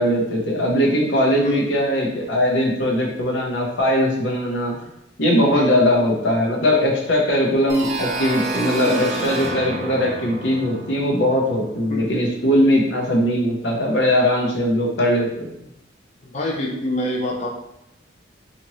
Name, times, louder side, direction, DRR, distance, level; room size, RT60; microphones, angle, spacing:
voice 1, 0.0-4.7 5.2-15.5, equal, 70° left, -1 dB, 0.7 m, -20 dB
sound 1, 7.7-12.4, right 3 dB, 35° right, 0.4 m, -30 dB
voice 2, 16.2-17.5, left 1 dB, 35° left, -2 dB, 0.5 m, -26 dB
2.7 x 2.5 x 3.0 m, 0.84 s
head